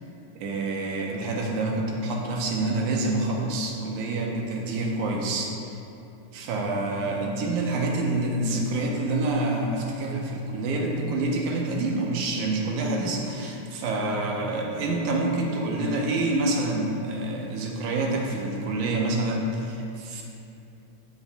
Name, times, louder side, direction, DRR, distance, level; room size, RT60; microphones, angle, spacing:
voice 1, 0.4-5.5 6.3-20.2, right 2 dB, 80° right, -1 dB, 2.2 m, -27 dB
12.5 x 7.2 x 2.2 m, 2.7 s
omnidirectional pair, 3.6 m